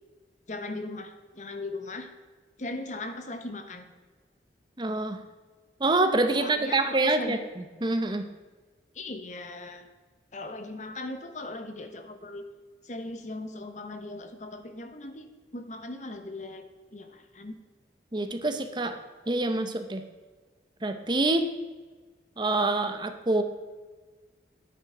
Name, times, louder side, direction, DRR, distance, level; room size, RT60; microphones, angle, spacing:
voice 1, 0.5-2.1 2.6-3.9 6.4-7.4 8.9-9.9 10.3-12.5 12.8-17.6, left 2 dB, 45° left, 7 dB, 1.0 m, -38 dB
voice 2, 4.8-5.2 5.8-8.2 18.1-19.0 19.3-20.0 20.8-21.5 22.4-23.4, right 2 dB, 25° right, 8 dB, 0.7 m, -26 dB
10.5 x 8.9 x 4.9 m, 1.3 s
head